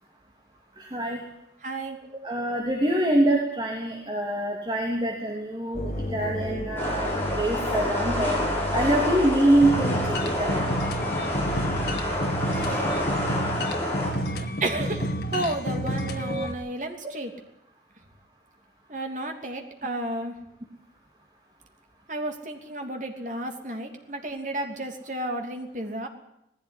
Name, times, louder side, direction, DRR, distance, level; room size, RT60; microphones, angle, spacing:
voice 1, 0.8-1.2 2.2-7.1 7.4-8.4 8.7-10.0 10.4-10.6 16.3-16.5, right 1 dB, 25° right, -1 dB, 3.2 m, -24 dB
voice 2, 1.6-2.0 14.6-15.1 15.3-17.3 18.9-20.3 22.1-26.1, right 1 dB, 45° right, 4 dB, 3.0 m, -32 dB
sound 1, 5.7-13.8, equal, 40° left, 2.9 m, -34 dB
sound 2, 6.8-14.1, left 1 dB, 10° left, 7.1 m, -28 dB
sound 3, 9.6-16.5, equal, 65° left, 2.5 m, -30 dB
19.5 x 15.5 x 10.0 m, 0.81 s
head